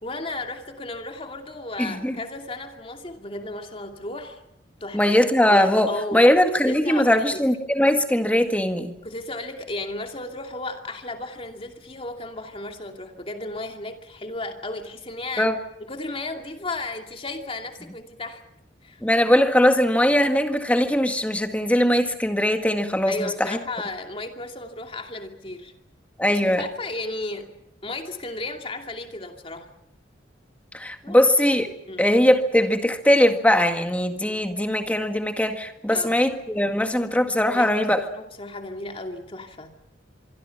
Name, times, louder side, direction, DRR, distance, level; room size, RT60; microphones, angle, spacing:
voice 1, 0.0-4.4 4.8-5.2 5.5-6.3 6.6-7.5 9.0-15.5 15.9-18.4 18.8-19.0 23.1-25.7 26.3-27.6 27.8-29.7 31.0-31.2 31.9-32.1 35.9-36.1 37.5-37.9 38.1-39.7, left 2 dB, 30° left, 4 dB, 2.6 m, -34 dB
voice 2, 1.8-2.2 4.9-8.9 15.4-15.5 19.0-23.6 26.2-26.6 30.7-31.7 32.0-38.0, left 1 dB, 10° left, 6 dB, 1.8 m, -20 dB
25.5 x 24.5 x 5.9 m, 0.78 s
head